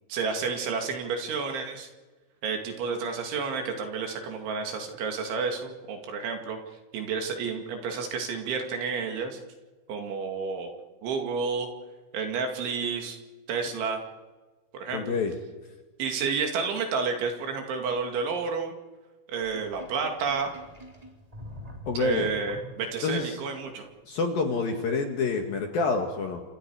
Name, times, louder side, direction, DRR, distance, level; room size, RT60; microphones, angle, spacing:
voice 1, 0.1-1.9 2.4-6.6 6.9-9.4 9.9-10.7 11.0-11.7 12.1-13.2 13.5-14.0 14.7-15.2 16.0-18.7 19.3-20.5 22.0-23.9, right 5 dB, 65° right, 4 dB, 4.5 m, -30 dB
voice 2, 14.9-15.4 21.9-22.3 23.0-23.4 24.1-26.4, left 4 dB, 60° left, 3 dB, 2.8 m, -27 dB
Sink (filling or washing), 19.4-23.2, left 1 dB, 10° right, 2.6 m, -44 dB
30.0 x 27.5 x 4.9 m, 1.3 s
omnidirectional pair, 6.0 m